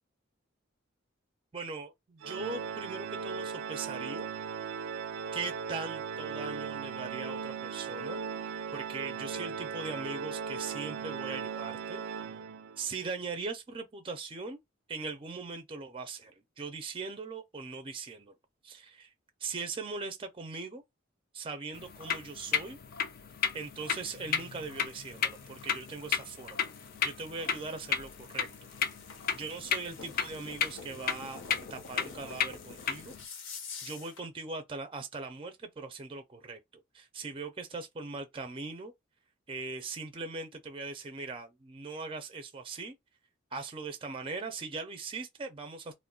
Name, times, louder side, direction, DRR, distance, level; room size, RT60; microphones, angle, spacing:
voice 1, 1.5-4.3 5.3-12.0 12.8-14.6 14.9-16.3 16.6-18.3 18.6-19.1 19.4-20.8 21.3-22.8 23.5-26.7 27.0-28.7 29.3-31.4 31.7-33.1 33.8-38.9 39.5-42.9 43.5-45.9, right 4 dB, 25° right, 0.4 m, -40 dB
Organ, 2.2-12.9, right 6 dB, 90° right, 0.4 m, -38 dB
sound 1, 21.8-33.2, left 7 dB, 50° left, 0.4 m, -34 dB
sound 2, 23.3-34.3, left 5 dB, 85° left, 0.8 m, -49 dB
2.3 x 2.1 x 3.6 m
head